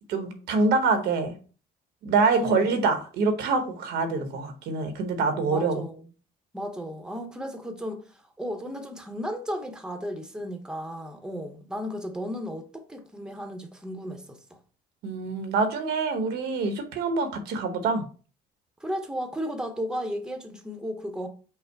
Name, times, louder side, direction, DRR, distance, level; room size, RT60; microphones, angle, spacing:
voice 1, 0.1-1.4 2.0-5.8 15.0-18.0, right 4 dB, 80° right, 1.0 m, -25 dB
voice 2, 5.4-6.1 6.5-14.4 18.8-21.3, equal, 5° right, 0.8 m, -34 dB
5.6 x 2.0 x 4.6 m
cardioid pair, 110°, 17 cm